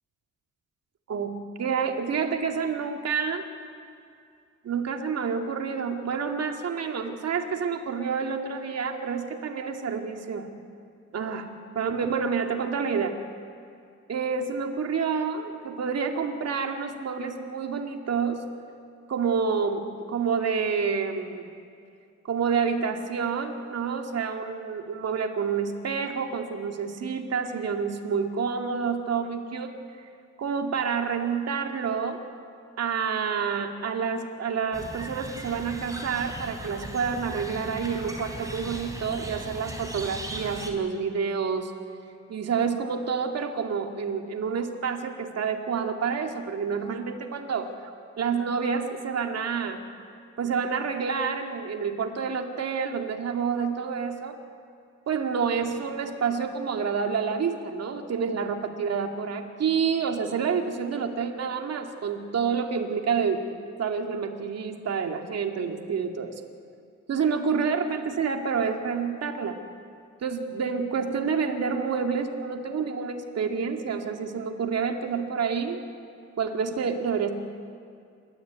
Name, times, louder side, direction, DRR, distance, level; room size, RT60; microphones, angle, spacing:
voice 1, 1.1-3.5 4.6-10.5 11.1-11.5 11.8-13.2 14.1-18.5 19.1-21.5 22.3-29.7 30.4-32.2 32.8-41.7 42.3-47.7 48.2-49.8 50.4-54.4 55.1-63.4 63.8-66.4 67.1-69.6 70.2-75.8 76.4-77.3, right 6 dB, 55° right, 4 dB, 2.4 m, -28 dB
sound 1, 34.7-40.7, right 1 dB, 10° right, 3.8 m, -38 dB
28.0 x 13.5 x 9.1 m, 2.3 s
cardioid pair, 90°, 30 cm